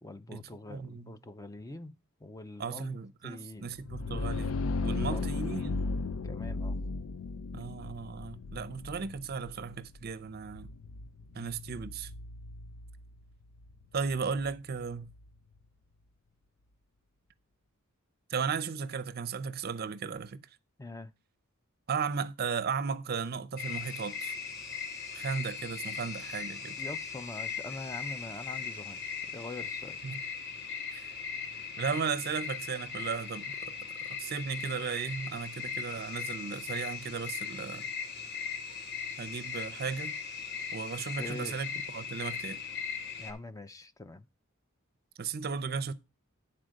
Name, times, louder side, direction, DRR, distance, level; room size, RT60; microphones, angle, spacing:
voice 1, 0.0-1.9 2.2-3.0 3.2-3.7 4.9-5.3 6.2-6.8 20.8-21.1 26.8-30.0 41.2-41.6 43.2-44.3, left 2 dB, 15° left, 0.4 m, -44 dB
voice 2, 0.7-1.2 2.6-5.8 7.5-10.7 11.3-12.1 13.9-15.1 18.3-20.4 21.9-24.3 25.1-26.8 30.0-30.2 30.9-31.1 31.8-33.7 34.1-37.9 39.2-40.2 40.7-42.6 45.2-45.9, right 5 dB, 45° right, 0.5 m, -35 dB
sound 1, 3.7-15.3, left 3 dB, 70° left, 0.5 m, -37 dB
sound 2, 23.6-43.3, left 6 dB, 55° left, 1.7 m, -39 dB
10.5 x 4.3 x 6.3 m
head